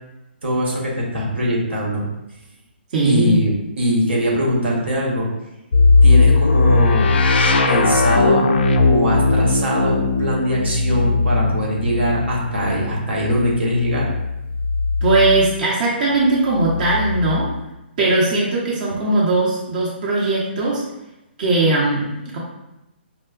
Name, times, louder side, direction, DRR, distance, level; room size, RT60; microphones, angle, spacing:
voice 1, 0.4-2.1 3.0-5.3 6.0-7.2 7.7-8.5 8.8-14.1, equal, 75° right, -3 dB, 1.1 m, -21 dB
voice 2, 2.9-3.4 15.0-17.5 18.0-20.8 21.4-22.4, right 2 dB, 50° right, -6 dB, 0.8 m, -19 dB
sound 1, 5.7-15.5 16.5-17.6, left 3 dB, 65° left, 0.4 m, -18 dB
4.6 x 2.0 x 2.4 m, 0.94 s
hypercardioid pair, 145°, 6 cm